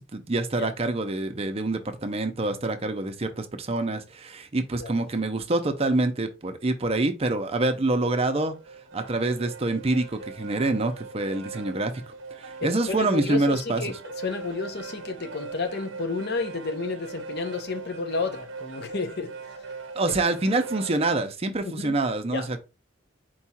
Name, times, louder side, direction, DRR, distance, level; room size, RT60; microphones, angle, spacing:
voice 1, 0.0-8.6 8.9-12.0 12.4-13.8 19.9-22.6, right 2 dB, 30° right, 0.5 m, -26 dB
sound 1, 8.5-21.1, right 4 dB, 75° right, 0.6 m, -40 dB
voice 2, 12.6-14.0 14.2-19.4 20.0-20.1 21.6-22.0 22.3-22.5, left 4 dB, 55° left, 0.8 m, -31 dB
4.6 x 2.4 x 4.2 m
head